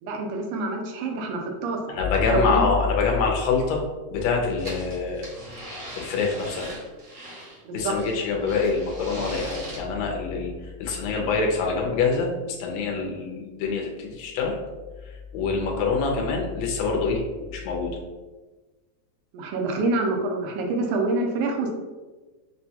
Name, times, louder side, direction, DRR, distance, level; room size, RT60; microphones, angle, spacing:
voice 1, 0.0-1.8 2.1-2.7 7.6-7.9 19.3-21.7, right 2 dB, 85° right, 2 dB, 2.1 m, -26 dB
voice 2, 1.9-3.8 4.1-5.3 6.0-6.7 7.7-10.5 10.8-14.6 15.3-18.0, left 4 dB, 75° left, 0 dB, 1.7 m, -25 dB
sound 1, 4.6-7.6 8.0-9.8, right 1 dB, 65° right, 1.0 m, -39 dB
6.1 x 2.2 x 2.8 m, 1.2 s
omnidirectional pair, 3.5 m